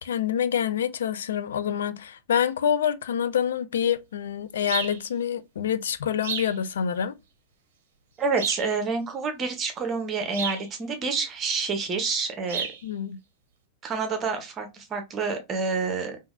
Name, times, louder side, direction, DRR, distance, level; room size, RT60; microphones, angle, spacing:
voice 1, 0.0-7.1 12.8-13.2, left 8 dB, 65° left, 0.3 m, -26 dB
sound 1, 4.7-5.0 6.2-6.6 8.4-8.7 10.3-10.7 12.5-12.8, right 6 dB, 55° right, 0.7 m, -31 dB
voice 2, 8.2-12.7 13.8-16.2, right 4 dB, 25° right, 0.8 m, -28 dB
3.6 x 2.5 x 2.3 m
figure-of-eight pair, 90°, 0 cm